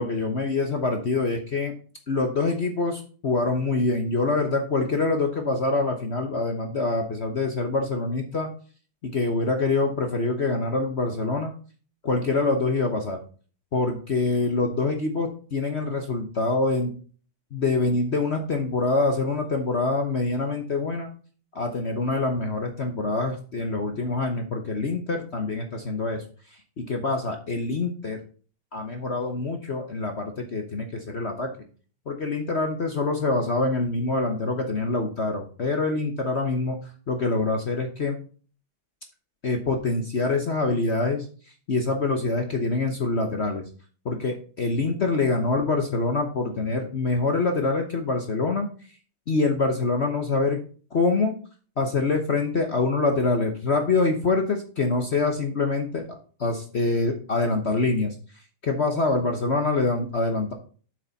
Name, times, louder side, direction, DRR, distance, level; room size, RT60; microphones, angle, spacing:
voice 1, 0.0-1.7 2.1-8.5 9.0-11.5 12.0-13.2 13.7-16.9 17.5-21.1 21.5-26.2 26.5-28.2 28.7-31.5 32.1-36.8 37.1-38.2 39.4-41.3 41.7-43.6 44.0-48.7 49.3-50.6 50.9-51.3 51.8-56.0 56.4-58.1 58.6-60.5, left 3 dB, 50° left, 4 dB, 0.8 m, -25 dB
7.7 x 6.5 x 4.0 m, 0.40 s
omnidirectional pair, 2.4 m